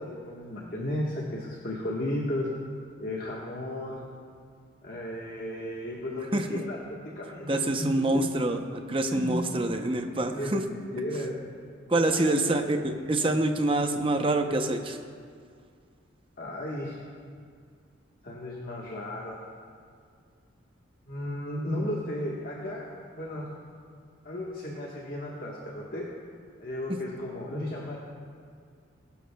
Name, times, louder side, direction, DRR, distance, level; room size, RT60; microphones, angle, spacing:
voice 1, 0.0-2.5 3.0-4.0 4.8-8.0 9.1-9.3 10.3-11.4 11.9-12.6 16.4-17.0 18.2-19.5 21.1-23.5 24.2-26.1 26.6-28.0, left 1 dB, 45° left, -3 dB, 1.4 m, -34 dB
voice 2, 7.5-10.6 11.9-15.0, right 2 dB, 25° right, 5 dB, 0.7 m, -26 dB
21.5 x 11.5 x 2.3 m, 2.1 s
head